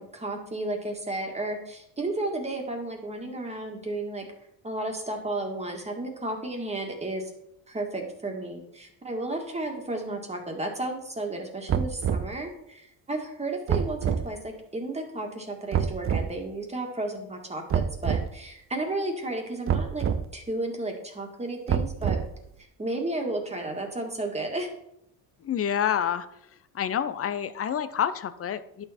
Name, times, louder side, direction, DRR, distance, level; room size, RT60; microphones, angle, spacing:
voice 1, 0.0-4.3 4.6-7.3 7.7-20.0 20.3-22.2 22.8-24.7, right 2 dB, 15° right, 2 dB, 1.9 m, -33 dB
sound 1, 11.7-12.3 13.7-14.3 15.7-16.3 17.7-18.3 19.7-20.2 21.7-22.4, right 8 dB, 35° right, 0.6 m, -26 dB
voice 2, 25.4-26.3 26.7-28.8, left 9 dB, 35° left, 14 dB, 0.6 m, -28 dB
11.0 x 6.7 x 4.3 m, 0.76 s
cardioid pair, 125°, 39 cm